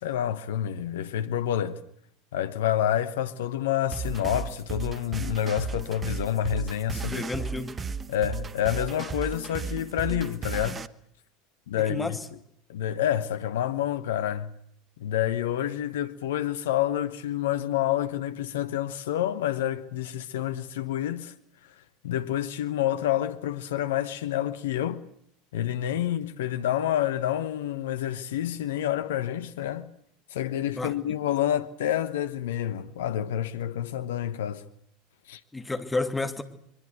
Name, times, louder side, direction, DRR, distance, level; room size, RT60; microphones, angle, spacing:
voice 1, 0.0-1.8 2.3-7.2 8.1-10.8 11.7-12.2 12.7-14.5 15.0-21.3 22.0-25.0 25.5-29.9 30.3-34.6 35.3-35.4, left 11 dB, 70° left, 1.1 m, -28 dB
sound 1, 3.9-10.9, right 5 dB, 25° right, 1.1 m, -34 dB
voice 2, 6.9-7.7 11.7-12.2 30.7-30.9 35.5-36.4, left 3 dB, 10° left, 2.7 m, -31 dB
23.0 x 22.5 x 8.1 m
hypercardioid pair, 80°, 0 cm